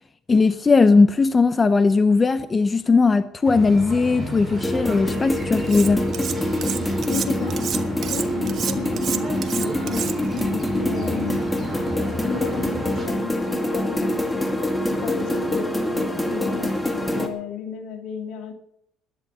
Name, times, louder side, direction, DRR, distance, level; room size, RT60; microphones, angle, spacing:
voice 1, 0.3-6.1, left 4 dB, 25° left, 0.7 m, -18 dB
sound 1, 3.4-13.1, right 1 dB, 10° right, 7.0 m, -33 dB
sound 2, 4.5-17.3, left 1 dB, 10° left, 2.4 m, -25 dB
Cutlery silverware, 5.7-6.3 6.6-10.4, right 8 dB, 50° right, 1.4 m, -29 dB
voice 2, 6.8-7.7 8.1-11.4 12.3-14.5 14.9-18.5, left 6 dB, 70° left, 2.6 m, -34 dB
12.5 x 11.0 x 8.0 m
cardioid pair, 115°, 0 cm